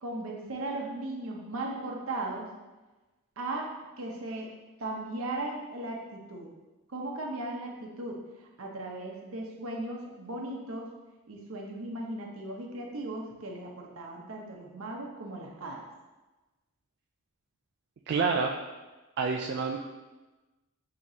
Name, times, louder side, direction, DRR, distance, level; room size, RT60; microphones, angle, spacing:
voice 1, 0.0-2.5 3.4-3.7 4.0-4.5 4.8-6.5 6.9-8.2 8.6-10.9 11.3-15.8, right 2 dB, 75° right, 0 dB, 0.8 m, -37 dB
voice 2, 18.1-18.5 19.2-19.8, right 5 dB, 55° right, 0 dB, 0.3 m, -27 dB
6.3 x 2.9 x 2.8 m, 1.1 s
head